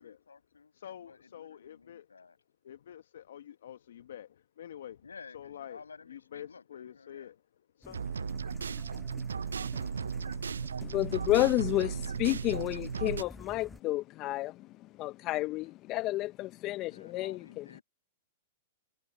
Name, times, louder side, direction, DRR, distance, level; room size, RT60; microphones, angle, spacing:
voice 1, 0.0-0.7 1.0-2.4 5.0-7.3 16.9-17.8, left 5 dB, 90° left, 5.8 m, -53 dB
voice 2, 0.7-2.1 2.6-5.1 5.3-7.4 7.8-8.0, left 10 dB, 70° left, 1.2 m, -47 dB
sound 1, 7.8-13.8, left 1 dB, 5° left, 7.9 m, -51 dB
sound 2, 7.9-13.2, right 6 dB, 85° right, 0.4 m, -36 dB
voice 3, 10.8-14.7 15.0-17.8, left 17 dB, 40° left, 0.6 m, -31 dB
hypercardioid pair, 110°, 0 cm